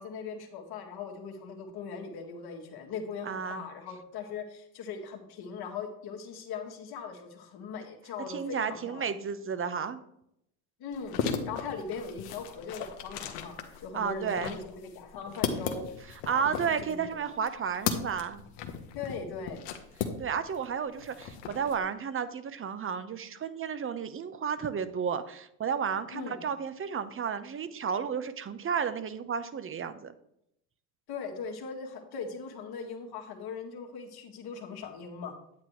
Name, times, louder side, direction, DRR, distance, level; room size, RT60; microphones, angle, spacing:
voice 1, 0.0-9.1 10.8-17.2 18.9-19.6 26.1-26.5 31.1-35.4, left 5 dB, 55° left, 3 dB, 2.0 m, -40 dB
voice 2, 3.2-3.6 8.3-10.0 13.9-14.6 16.3-18.4 20.2-30.1, right 7 dB, 30° right, 12 dB, 0.9 m, -32 dB
sound 1, 10.9-20.6 20.9-21.8, left 7 dB, 70° left, 1.3 m, -36 dB
9.6 x 8.6 x 3.2 m, 0.76 s
supercardioid pair, 85°, 44 cm